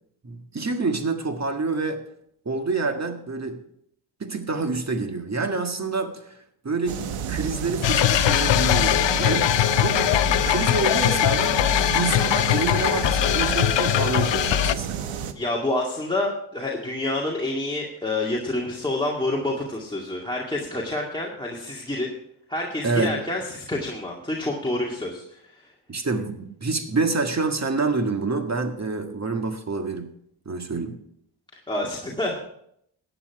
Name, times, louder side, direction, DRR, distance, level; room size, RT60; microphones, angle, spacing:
voice 1, 0.2-2.0 2.4-3.6 4.2-6.4 6.6-10.1 10.4-11.5 11.9-15.0 22.8-23.1 25.9-30.1 30.4-31.0, right 3 dB, 30° right, 6 dB, 1.7 m, -27 dB
sound 1, 6.9-15.3, right 8 dB, 80° right, 1.1 m, -31 dB
sound 2, 7.8-14.7, left 13 dB, 60° left, 0.7 m, -21 dB
voice 2, 15.4-22.1 22.5-25.4 31.7-32.4, left 2 dB, 10° left, -3 dB, 2.1 m, -28 dB
14.5 x 9.0 x 4.7 m, 0.72 s
cardioid pair, 75°, 50 cm